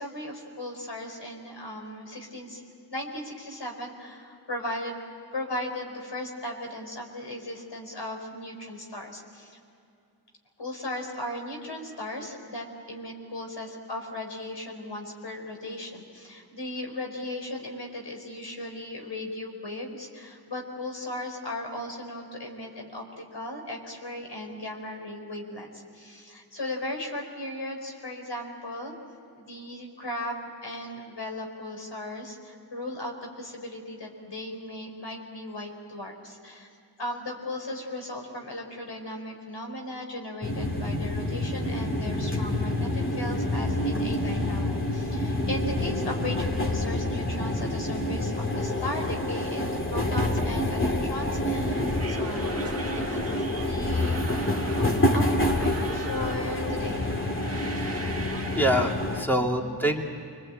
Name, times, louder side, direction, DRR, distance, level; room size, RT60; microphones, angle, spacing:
voice 1, 0.0-2.6 2.9-5.0 5.3-9.6 10.6-28.9 29.3-36.7 37.0-57.3 59.3-59.7, left 1 dB, 85° left, 1 dB, 4.9 m, -37 dB
sound 1, 40.4-59.2, left 1 dB, 30° left, 2.6 m, -27 dB
Brass instrument, 45.7-53.5, left 1 dB, 55° left, 3.0 m, -44 dB
sound 2, 51.7-58.9, right 3 dB, 35° right, 1.4 m, -41 dB
voice 2, 58.5-60.0, equal, 5° left, 1 dB, 2.7 m, -25 dB
28.5 x 22.5 x 8.8 m, 2.5 s
wide cardioid pair, 65°, 41 cm